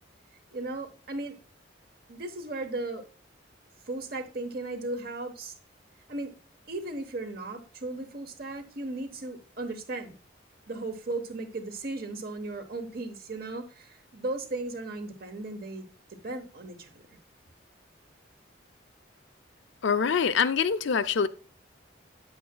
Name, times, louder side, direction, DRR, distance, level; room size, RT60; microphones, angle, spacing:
voice 1, 0.5-1.4 2.1-3.0 3.9-5.5 6.1-6.3 6.7-10.1 10.7-15.9 16.2-17.1, right 2 dB, 50° right, 1.0 m, -36 dB
voice 2, 19.8-21.3, left 6 dB, 70° left, 0.4 m, -24 dB
8.4 x 7.7 x 2.2 m
head